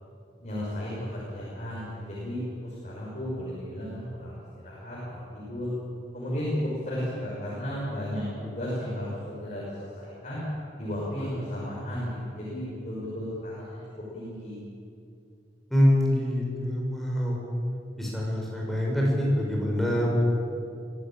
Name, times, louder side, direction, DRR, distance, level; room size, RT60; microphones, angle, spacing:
voice 1, 0.4-5.7 6.1-10.4 10.8-13.8 14.1-14.6, equal, 40° left, -7 dB, 5.9 m, -34 dB
voice 2, 15.7-17.4 18.0-20.3, equal, ahead, -3 dB, 5.9 m, -25 dB
23.5 x 15.5 x 9.1 m, 2.5 s
head